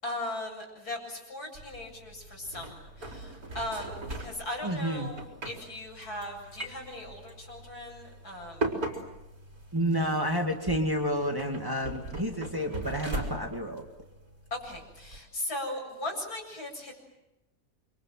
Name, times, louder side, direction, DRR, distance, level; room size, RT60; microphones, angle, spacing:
voice 1, 0.0-8.7 14.5-16.9, left 1 dB, 80° left, 2 dB, 8.3 m, -38 dB
sound 1, 1.5-15.2, right 2 dB, 70° right, 4.7 m, -40 dB
voice 2, 4.6-5.1 9.7-13.9, equal, 15° right, 3 dB, 2.4 m, -30 dB
28.5 x 26.0 x 7.8 m, 0.94 s
omnidirectional pair, 1.6 m